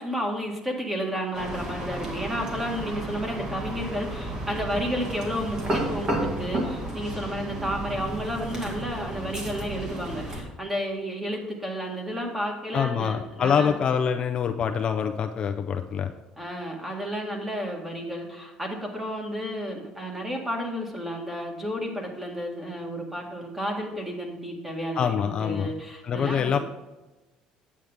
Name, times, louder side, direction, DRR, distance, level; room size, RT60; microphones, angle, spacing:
voice 1, 0.0-13.8 16.4-26.6, equal, 10° right, 1 dB, 1.9 m, -32 dB
sound 1, 1.3-10.4, right 1 dB, 30° right, 2.2 m, -32 dB
voice 2, 12.7-16.1 25.0-25.7 26.0-26.6, left 7 dB, 40° left, 6 dB, 0.5 m, -25 dB
9.3 x 8.5 x 3.7 m, 1.1 s
cardioid pair, 135°, 2 cm